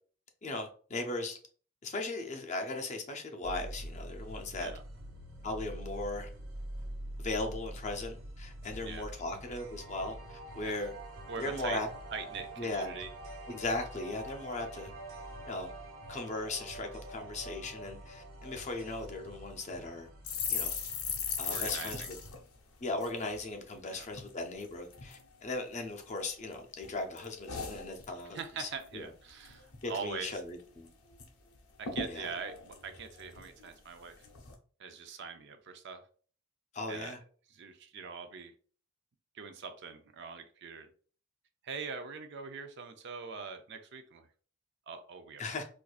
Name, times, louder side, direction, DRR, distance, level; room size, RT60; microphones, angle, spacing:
voice 1, 0.4-1.4 1.8-4.7 5.4-6.3 7.2-10.9 11.4-11.9 12.6-12.9 13.5-14.9 15.5-15.7 16.1-20.1 20.5-20.7 21.4-22.1 22.8-29.0 29.8-30.9 32.1-32.3 36.7-37.2 45.4-45.6, left 2 dB, 35° left, 4 dB, 0.5 m, -38 dB
sound 1, 3.4-22.3, equal, 90° right, 1.4 m, -47 dB
sound 2, 9.1-20.1, right 2 dB, 70° right, 1.2 m, -48 dB
voice 2, 11.3-11.8 12.1-13.1 21.4-22.1 23.9-24.1 28.3-30.4 31.8-34.3 34.8-36.0 36.9-37.2 37.5-38.5 39.3-40.9 41.6-44.3 44.9-45.5, right 5 dB, 55° right, 7 dB, 0.5 m, -43 dB
sound 3, 20.2-23.8 24.1-24.3 24.6-25.2 25.7-26.5 26.8-28.5 28.8-29.0 29.3-29.9 30.2-30.3 30.6-31.3 31.5-31.6 31.8-33.7 34.2-34.5, left 6 dB, 90° left, 0.8 m, -39 dB
4.4 x 2.5 x 2.4 m, 0.43 s
head